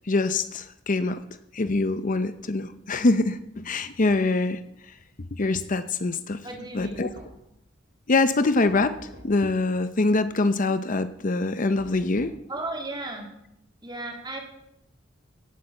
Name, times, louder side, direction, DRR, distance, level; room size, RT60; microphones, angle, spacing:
voice 1, 0.1-1.2 1.5-4.6 5.3-6.4 6.7-7.1 8.1-12.3, left 3 dB, 45° left, 11 dB, 0.7 m, -24 dB
voice 2, 6.4-7.1 12.5-13.3 13.8-14.4, right 2 dB, 25° right, 1 dB, 3.2 m, -34 dB
Knock, 6.8-7.6 8.8-9.5 11.8-12.5, right 1 dB, 65° right, 3.9 m, -48 dB
17.0 x 8.3 x 7.7 m, 0.80 s
head